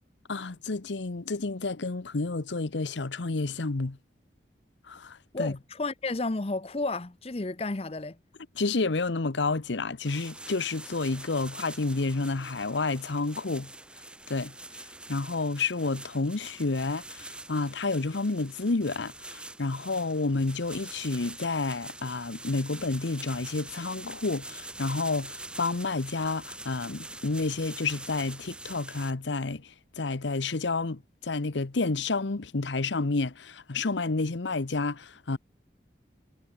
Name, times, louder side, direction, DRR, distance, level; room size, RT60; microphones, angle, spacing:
voice 1, 0.3-4.0 4.9-5.5 8.6-13.7 14.3-14.5 15.1-35.4, left 3 dB, 75° left, 0.9 m, -30 dB
voice 2, 5.3-8.2, left 2 dB, 30° left, 0.7 m, -32 dB
sound 1, 10.0-29.1, right 2 dB, 5° right, 1.1 m, -45 dB
head